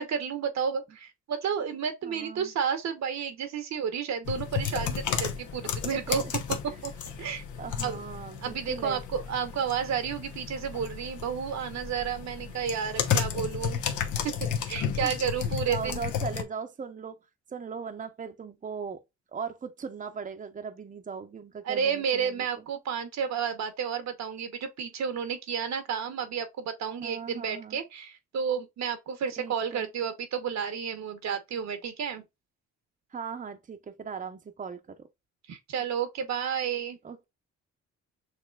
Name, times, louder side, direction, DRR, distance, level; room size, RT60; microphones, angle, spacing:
voice 1, 0.0-6.2 6.6-6.9 7.2-7.4 7.8-8.0 8.4-13.8 14.2-16.0 21.6-32.2 35.5-37.0, right 7 dB, 65° right, 1.1 m, -31 dB
voice 2, 2.0-2.5 5.9-6.2 6.7-6.8 7.6-9.0 15.0-15.1 15.7-17.2 17.5-19.0 19.3-22.6 27.0-27.8 29.4-29.9 33.1-35.1 37.0-37.2, right 6 dB, 25° right, 0.7 m, -39 dB
sound 1, 4.3-16.4, left 8 dB, 75° left, 1.0 m, -33 dB
6.6 x 3.0 x 2.3 m
cardioid pair, 90°, 30 cm